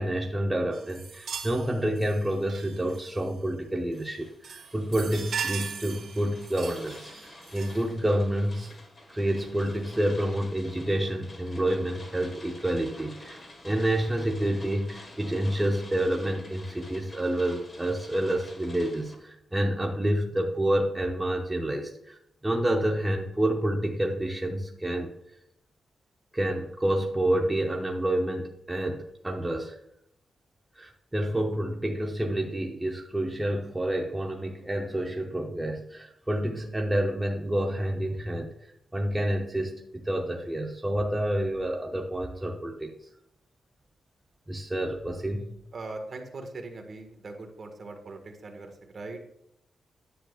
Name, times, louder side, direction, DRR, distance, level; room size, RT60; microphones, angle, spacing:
voice 1, 0.0-7.1 7.5-8.7 9.1-22.2 22.4-25.1 26.3-29.8 30.8-38.5 38.9-42.9 44.5-45.6, right 1 dB, 10° right, 0 dB, 0.8 m, -28 dB
sound 1, 0.7-3.4 3.9-4.2 4.4-7.9 8.6-8.7 9.6-9.8, right 6 dB, 75° right, 1.4 m, -39 dB
sound 2, 3.9-19.2, left 2 dB, 35° left, 1.6 m, -49 dB
voice 2, 45.7-49.2, right 3 dB, 45° right, 3 dB, 1.6 m, -40 dB
10.0 x 8.3 x 2.4 m, 0.78 s
wide cardioid pair, 135°, 0 cm